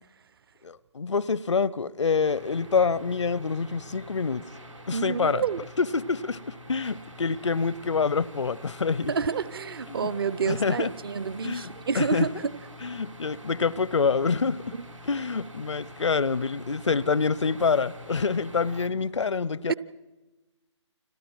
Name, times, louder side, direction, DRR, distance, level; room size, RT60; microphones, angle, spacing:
voice 1, 0.6-4.4 4.9-5.4 5.8-9.1 9.9-10.1 10.5-10.9 11.4-12.3 12.8-14.7 15.1-19.7, left 5 dB, 70° left, 0.7 m, -26 dB
sound 1, 2.2-18.9, equal, 90° right, 2.8 m, -46 dB
voice 2, 4.9-5.6 9.1-12.5 19.7-19.8, right 6 dB, 50° right, 0.7 m, -28 dB
30.0 x 26.0 x 4.6 m
figure-of-eight pair, 135°, 16 cm